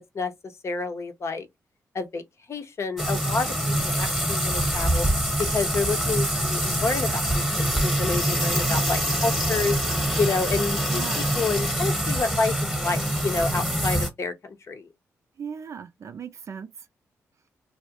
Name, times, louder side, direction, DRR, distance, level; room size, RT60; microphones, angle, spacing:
voice 1, 0.6-1.5 1.9-2.2 2.5-5.0 5.5-9.8 10.2-11.0 11.3-14.9, left 3 dB, 50° left, 0.6 m, -29 dB
sound 1, 3.0-14.1, right 1 dB, ahead, 1.0 m, -25 dB
voice 2, 8.3-8.9 10.8-11.3 15.4-16.7, right 7 dB, 60° right, 0.4 m, -38 dB
2.3 x 2.1 x 2.8 m
supercardioid pair, 55°, 6 cm